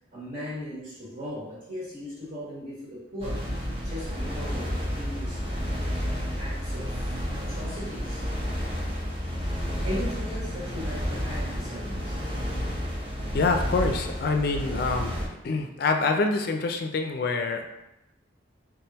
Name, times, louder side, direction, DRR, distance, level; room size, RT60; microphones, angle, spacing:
voice 1, 0.1-3.5 3.8-8.3 9.8-12.2, equal, 50° right, -9 dB, 1.4 m, -38 dB
sound 1, 3.2-15.3, equal, 30° right, 0.8 m, -31 dB
voice 2, 13.3-15.2 15.4-17.7, left 3 dB, 55° left, 5 dB, 0.4 m, -26 dB
3.5 x 3.4 x 2.9 m, 0.91 s
head